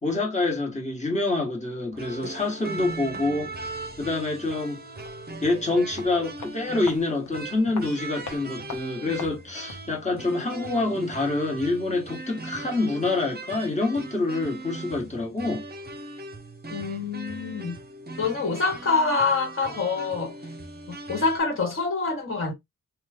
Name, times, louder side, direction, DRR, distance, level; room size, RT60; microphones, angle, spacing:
voice 1, 0.0-3.6 4.0-4.8 5.4-15.6, left 2 dB, 20° left, 1.4 m, -26 dB
sound 1, 1.9-21.4, right 2 dB, 30° right, 0.7 m, -39 dB
sound 2, 4.9-9.9 10.2-10.3, left 5 dB, 65° left, 1.0 m, -43 dB
voice 2, 16.7-17.8 18.2-20.4 20.9-22.5, left 4 dB, 40° left, 1.5 m, -26 dB
3.0 x 2.3 x 3.4 m
wide cardioid pair, 130°, 33 cm